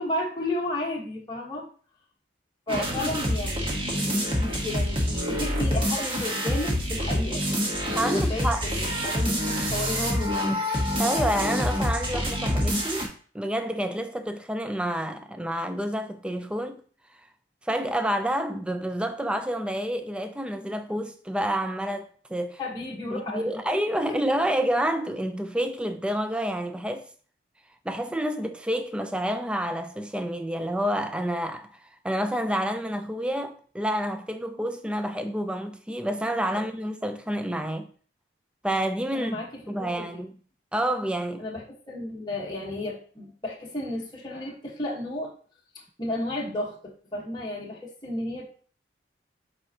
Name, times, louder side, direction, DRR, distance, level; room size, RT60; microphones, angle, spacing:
voice 1, 0.0-1.7 2.7-7.5 8.1-10.5 22.6-23.6 24.0-24.2 36.5-36.6 39.1-40.2 41.4-45.3 46.0-46.8 47.1-48.4, left 1 dB, 25° left, 1.3 m, -33 dB
sound 1, 2.7-13.1, equal, 30° right, 1.3 m, -26 dB
voice 2, 7.9-8.6 11.0-13.1 13.3-16.8 17.6-22.6 23.0-27.1 27.8-37.9 38.6-39.4 39.7-40.3 40.7-41.5, right 1 dB, 5° right, 0.4 m, -29 dB
7.8 x 4.3 x 2.8 m
head